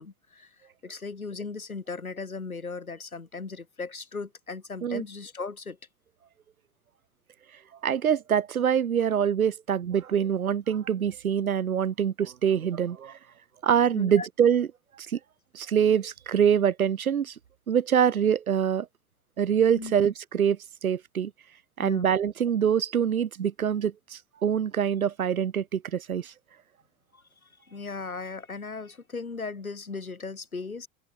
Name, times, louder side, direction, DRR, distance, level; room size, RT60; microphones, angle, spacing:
voice 1, 0.0-5.8 13.9-14.3 19.8-19.9 21.8-22.1 27.1-30.9, left 4 dB, 90° left, 4.5 m, -37 dB
voice 2, 7.8-13.2 13.6-14.7 15.1-15.2 15.5-17.3 17.7-18.9 19.4-20.6 20.8-21.3 21.8-23.9 24.4-26.3, right 8 dB, 85° right, 0.9 m, -24 dB
open air
figure-of-eight pair, 80°, 41 cm